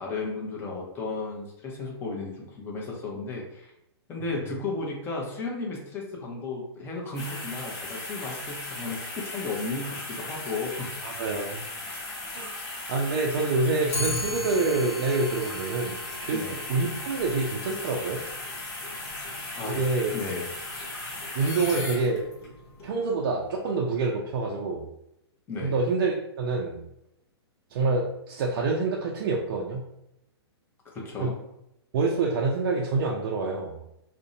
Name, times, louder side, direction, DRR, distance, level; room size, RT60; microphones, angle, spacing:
voice 1, 0.0-3.7 4.1-10.9 16.3-16.6 19.6-19.8 20.1-20.5 25.5-25.7 30.9-31.3, left 3 dB, 15° left, -2 dB, 0.6 m, -34 dB
sound 1, 7.1-22.5 23.0-23.1, left 2 dB, 45° left, 1.2 m, -37 dB
voice 2, 11.0-11.6 12.3-12.5 12.9-18.2 19.6-20.1 21.3-22.2 22.8-24.9 25.6-26.8 27.7-29.9 31.2-31.3 31.9-33.8, right 3 dB, 50° right, -1 dB, 0.4 m, -27 dB
Clock, 13.9-23.3, left 1 dB, 70° left, 0.8 m, -40 dB
2.6 x 2.1 x 2.5 m, 0.83 s
hypercardioid pair, 130°, 14 cm